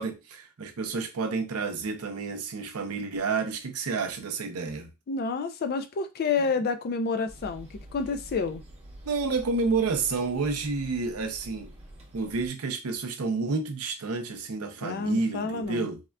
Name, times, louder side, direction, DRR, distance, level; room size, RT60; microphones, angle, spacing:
voice 1, 0.0-4.9 9.0-11.7 12.1-16.0, right 4 dB, 80° right, 0.6 m, -30 dB
voice 2, 5.1-8.6 14.8-15.9, left 4 dB, 45° left, 0.3 m, -29 dB
sound 1, 7.3-12.5, right 1 dB, 30° right, 0.9 m, -47 dB
3.5 x 2.3 x 2.2 m
head